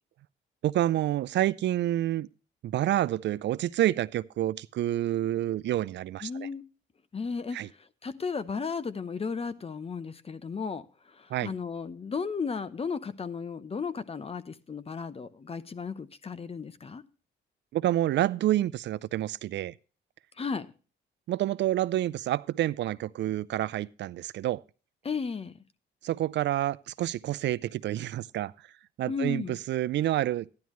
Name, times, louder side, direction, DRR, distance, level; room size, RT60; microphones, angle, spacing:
voice 1, 0.6-2.3 2.6-6.5 7.5-7.7 11.3-11.5 17.7-19.7 21.3-24.6 26.0-28.5 29.0-30.5, right 13 dB, 65° right, 0.4 m, -28 dB
voice 2, 6.2-6.6 7.1-7.6 8.0-10.9 11.1-17.0 20.4-20.7 25.0-25.5 29.1-29.6, left 5 dB, 30° left, 0.8 m, -34 dB
12.5 x 10.5 x 3.1 m
cardioid pair, 90°, 20 cm